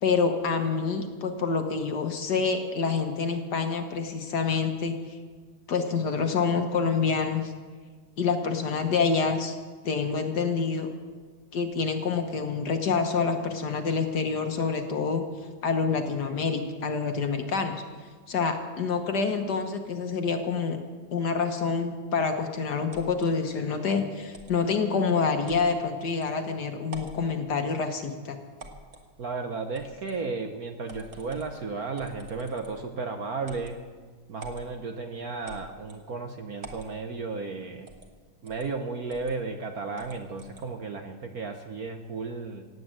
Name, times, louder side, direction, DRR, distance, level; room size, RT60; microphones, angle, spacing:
voice 1, 0.0-5.0 5.7-7.5 8.2-9.5 9.8-10.9 11.5-15.2 15.6-17.7 18.3-20.8 21.1-28.4, left 5 dB, 55° left, 5 dB, 1.5 m, -27 dB
sound 1, 22.9-23.3 24.3-24.6 25.5-25.7 26.2-26.3 26.8-27.2 28.6-29.1 29.7-30.2 30.9-31.5 32.0-32.8 33.4-33.8 34.4-34.7 35.5-36.0 36.6-36.9 37.9-38.1 38.5-38.7 39.1-39.3 40.0-40.7, right 2 dB, 35° right, 1.7 m, -46 dB
voice 2, 29.2-33.8 34.3-37.9 38.4-42.7, right 4 dB, 55° right, 5 dB, 1.2 m, -34 dB
17.0 x 9.2 x 7.7 m, 1.5 s
omnidirectional pair, 2.3 m